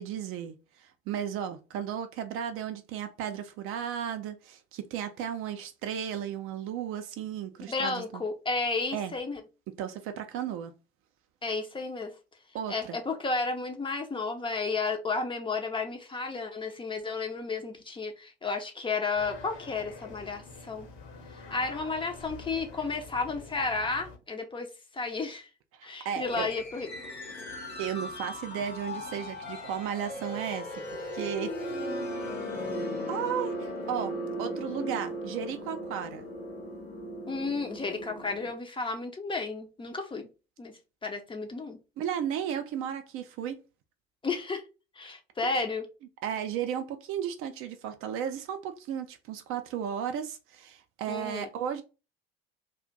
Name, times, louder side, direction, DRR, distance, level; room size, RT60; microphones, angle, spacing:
voice 1, 0.0-8.2 8.9-9.1 9.8-10.7 12.5-13.0 25.7-26.5 27.8-31.5 33.1-36.3 42.0-43.6 45.4-45.7 46.2-51.8, right 9 dB, 45° right, 0.5 m, -34 dB
voice 2, 7.7-9.4 11.4-12.1 12.7-20.9 21.3-25.5 25.8-26.9 34.8-35.0 37.3-40.2 40.6-40.7 41.0-41.8 44.2-44.6 45.0-45.9 51.1-51.5, left 4 dB, 15° left, 0.5 m, -32 dB
sound 1, 19.1-24.2, left 4 dB, 55° left, 0.9 m, -46 dB
sound 2, 26.2-38.5, equal, 85° left, 0.8 m, -37 dB
2.5 x 2.1 x 3.7 m
figure-of-eight pair, 55°, 31 cm